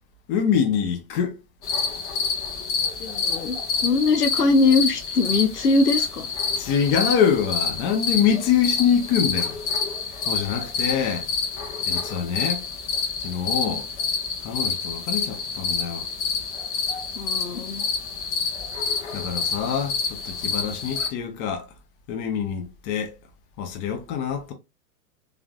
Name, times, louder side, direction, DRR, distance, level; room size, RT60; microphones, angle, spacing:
voice 1, 0.3-1.4 6.6-9.5 10.3-11.3 11.9-12.6 13.2-13.8 14.4-16.1 19.1-21.6 22.1-23.1 23.6-24.5, left 8 dB, 30° left, 0.9 m, -24 dB
sound 1, 1.6-21.1, left 5 dB, 45° left, 1.3 m, -28 dB
voice 2, 3.0-6.3 13.6-13.8 17.2-17.8, left 3 dB, 80° left, 0.7 m, -22 dB
3.5 x 3.5 x 2.3 m
figure-of-eight pair, 95°, 46 cm